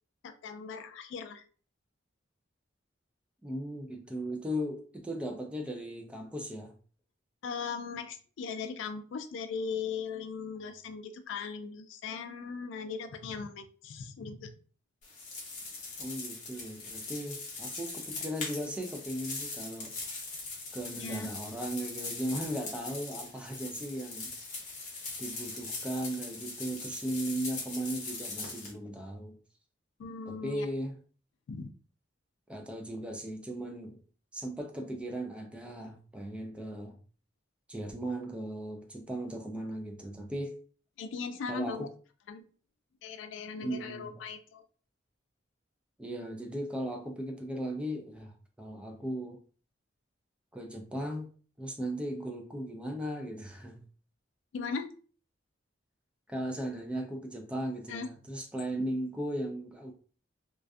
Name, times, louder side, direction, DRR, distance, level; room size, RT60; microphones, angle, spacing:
voice 1, 0.2-1.4 7.4-14.5 21.0-21.3 30.0-30.7 31.5-31.7 41.0-41.9 42.3-42.4 43.0-44.6 54.5-54.9 57.9-58.1, left 5 dB, 70° left, 0.3 m, -38 dB
voice 2, 3.4-6.8 16.0-20.0 20.7-24.3 25.2-29.4 30.3-31.0 32.5-34.0 34.3-37.0 37.7-40.6 41.5-41.9 43.6-44.2 46.0-49.4 50.5-51.3 51.6-53.8 56.3-59.9, right 1 dB, 5° right, 0.3 m, -37 dB
sound 1, 15.0-28.7, left 3 dB, 40° left, 0.7 m, -41 dB
2.4 x 2.3 x 2.3 m
head